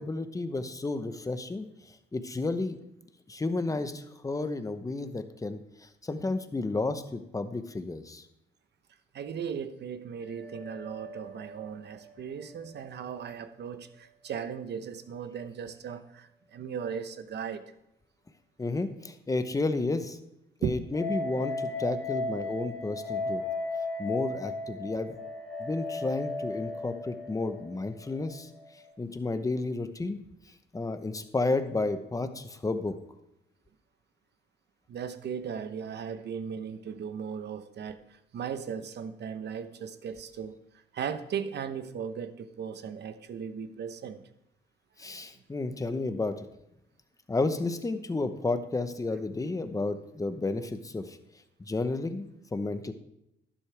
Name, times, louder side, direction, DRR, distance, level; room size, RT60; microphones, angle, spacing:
voice 1, 0.0-1.7 2.1-2.8 3.3-5.6 6.0-8.2 18.6-20.2 20.6-23.4 24.0-25.2 25.6-28.5 29.0-30.2 30.7-33.0 45.0-46.5 47.3-51.2 51.6-52.9, left 3 dB, 15° left, 9 dB, 0.9 m, -32 dB
voice 2, 9.1-17.6 20.6-20.8 34.9-38.0 38.3-40.6 40.9-44.2, right 7 dB, 60° right, 11 dB, 0.9 m, -37 dB
sound 1, 10.2-13.4 13.6-13.7 20.9-28.9, left 2 dB, ahead, 2.9 m, -37 dB
11.5 x 10.0 x 3.4 m, 0.83 s
cardioid pair, 90°, 20 cm